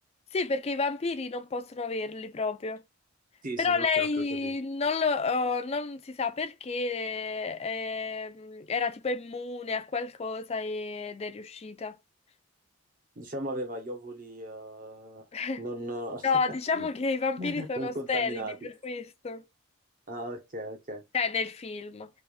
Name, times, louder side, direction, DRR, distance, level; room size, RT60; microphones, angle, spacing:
voice 1, 0.3-2.8 3.6-12.0 15.3-15.6 16.2-19.4 21.1-22.1, left 4 dB, 30° left, 0.4 m, -30 dB
voice 2, 3.4-4.6 13.2-15.2 15.6-16.3 16.7-16.9 17.4-18.7 20.1-21.0, right 1 dB, 40° right, 1.0 m, -37 dB
3.3 x 2.5 x 3.5 m
head